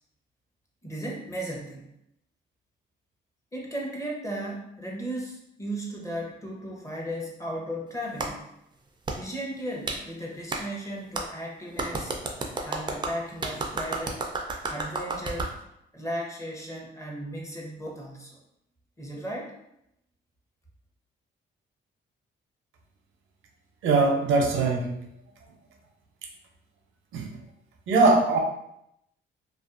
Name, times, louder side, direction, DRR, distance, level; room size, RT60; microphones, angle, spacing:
voice 1, 0.8-1.9 3.5-8.4 9.2-12.1 12.6-14.2 14.7-15.5 15.9-18.4 19.0-19.5, equal, 15° left, -2 dB, 0.7 m, -35 dB
Clapping, 8.2-8.3 9.1-9.2 9.9-10.0 10.5-10.6 11.1-11.3 11.8-15.5, right 3 dB, 25° right, 0.4 m, -31 dB
voice 2, 23.8-24.9 27.1-27.3 27.9-28.4, right 3 dB, 80° right, 2 dB, 0.6 m, -21 dB
2.5 x 2.3 x 2.4 m, 0.79 s
cardioid pair, 90°, 20 cm